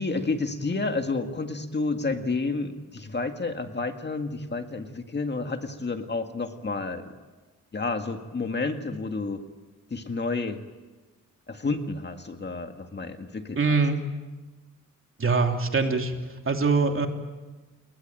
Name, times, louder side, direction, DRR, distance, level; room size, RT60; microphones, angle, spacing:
voice 1, 0.0-7.1 7.7-9.4 9.9-10.6 11.5-13.8, left 3 dB, 35° left, 6 dB, 2.0 m, -30 dB
voice 2, 13.5-14.0 15.2-16.1 16.4-17.1, right 4 dB, 40° right, 4 dB, 3.1 m, -23 dB
30.0 x 21.5 x 9.1 m, 1.2 s
wide cardioid pair, 120°, 31 cm